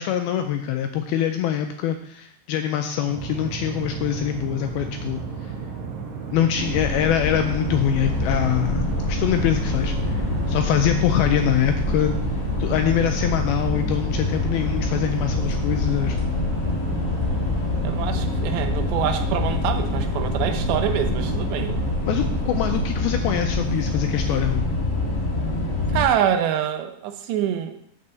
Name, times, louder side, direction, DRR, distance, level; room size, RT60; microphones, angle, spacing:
voice 1, 0.0-5.2 6.3-12.1 12.6-16.4 22.1-24.7, left 10 dB, 85° left, 6 dB, 2.2 m, -24 dB
sound 1, 3.1-22.9, right 4 dB, 60° right, 2.2 m, -34 dB
sound 2, 6.6-26.1, left 2 dB, 50° left, 1.3 m, -25 dB
voice 2, 17.8-21.8 25.9-27.8, right 9 dB, 90° right, 7 dB, 3.0 m, -25 dB
7.1 x 5.4 x 6.8 m, 0.68 s
omnidirectional pair, 4.8 m